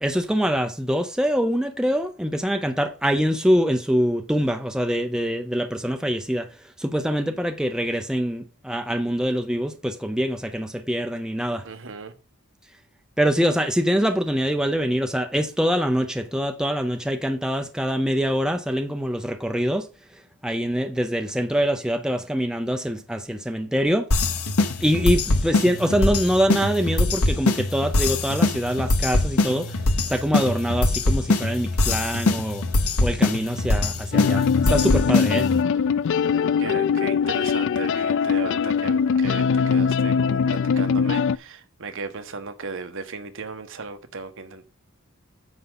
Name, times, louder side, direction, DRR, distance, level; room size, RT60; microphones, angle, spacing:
voice 1, 0.0-6.5 6.8-11.6 13.2-19.9 20.4-24.1 24.8-29.8 30.0-32.6 33.0-35.5, equal, 5° right, 0.6 m, -24 dB
voice 2, 11.6-12.1 36.6-44.7, right 4 dB, 60° right, 1.2 m, -36 dB
sound 1, 24.1-35.6, left 2 dB, 75° left, 1.1 m, -23 dB
sound 2, 34.1-41.4, left 6 dB, 55° left, 0.3 m, -21 dB
9.6 x 6.5 x 4.0 m
head